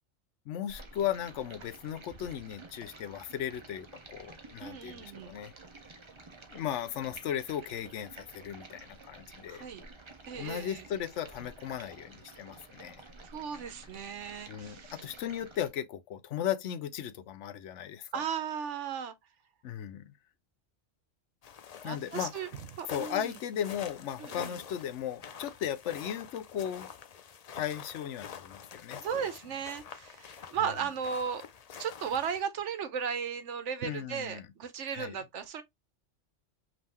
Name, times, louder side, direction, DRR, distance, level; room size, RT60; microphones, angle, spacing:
voice 1, 0.5-5.5 6.5-9.7 10.4-13.0 14.5-18.2 19.6-20.1 21.8-22.3 22.9-26.9 27.5-29.2 33.8-34.5 34.9-35.2, left 10 dB, 75° left, 0.9 m, -36 dB
Stream, 0.7-15.7, right 3 dB, 30° right, 0.7 m, -51 dB
voice 2, 4.6-5.4 9.5-9.9 10.3-10.9 13.2-15.0 18.1-19.1 21.8-23.4 24.2-24.6 29.0-31.4 31.8-35.6, right 7 dB, 75° right, 1.1 m, -36 dB
sound 1, 21.4-32.4, left 7 dB, 55° left, 0.4 m, -47 dB
5.4 x 2.8 x 2.9 m
omnidirectional pair, 1.2 m